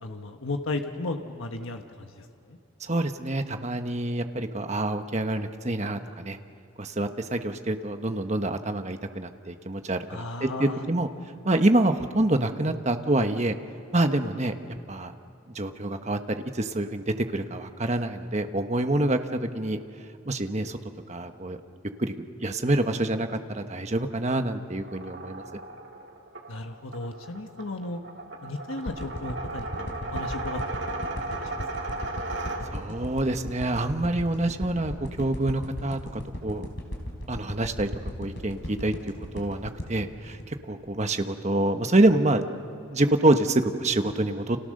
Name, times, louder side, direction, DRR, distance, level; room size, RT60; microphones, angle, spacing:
voice 1, 0.0-2.6 10.1-10.8 26.5-28.0 28.4-30.8 31.2-31.3 31.6-32.0, left 2 dB, 75° left, 5 dB, 1.3 m, -35 dB
voice 2, 2.8-6.4 6.8-11.1 11.4-13.5 13.9-14.5 14.9-15.1 15.5-19.8 20.2-20.8 21.1-21.6 22.0-25.4 32.7-36.7 37.3-37.9 38.2-38.9 39.3-42.4 42.9-44.6, right 1 dB, 30° right, 7 dB, 1.2 m, -26 dB
sound 1, 24.8-33.1, right 2 dB, 55° right, 2.0 m, -36 dB
sound 2, 28.9-41.2 41.6-41.7, equal, 55° left, 4.5 m, -37 dB
30.0 x 28.0 x 6.6 m, 2.6 s
head